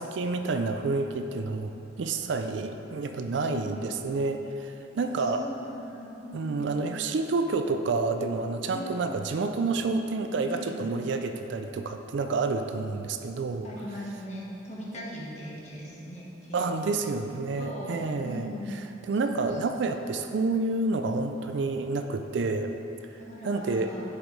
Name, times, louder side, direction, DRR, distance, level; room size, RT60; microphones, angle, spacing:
voice 1, 0.0-1.7 2.0-5.4 6.3-13.7 16.5-18.5 19.0-22.7 23.4-23.9, right 3 dB, 60° right, 7 dB, 0.4 m, -29 dB
voice 2, 3.4-4.1 5.0-6.7 8.7-9.0 10.5-10.8 13.6-17.1 17.6-18.7 19.2-19.4 23.2-24.0, equal, 35° left, -5 dB, 1.3 m, -40 dB
11.0 x 5.1 x 3.2 m, 2.9 s
head